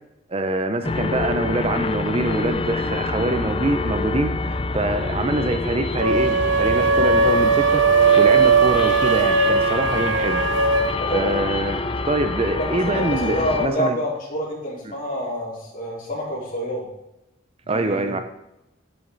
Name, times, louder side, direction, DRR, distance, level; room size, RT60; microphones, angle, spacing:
voice 1, 0.3-7.8 8.2-10.4 11.1-14.0 14.8-14.9 17.7-18.2, right 2 dB, 30° right, 8 dB, 0.7 m, -24 dB
sound 1, 0.8-13.7, left 3 dB, 30° left, 0.5 m, -26 dB
sound 2, 6.0-11.0, right 5 dB, 75° right, 0.7 m, -18 dB
voice 2, 11.0-11.3 11.7-11.9 12.6-16.8 17.6-18.2, equal, 45° left, -5 dB, 4.4 m, -27 dB
11.0 x 9.4 x 4.0 m, 0.89 s
head